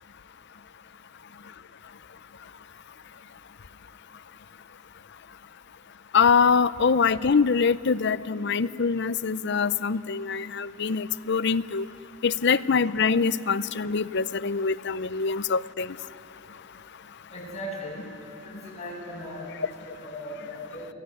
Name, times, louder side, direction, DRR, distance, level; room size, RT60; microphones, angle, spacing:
voice 1, 6.1-11.9 12.2-16.0, left 5 dB, 55° left, 15 dB, 0.6 m, -24 dB
voice 2, 17.3-18.1 18.4-20.9, left 1 dB, 30° left, -4 dB, 7.8 m, -38 dB
27.0 x 18.5 x 9.8 m, 3.0 s
head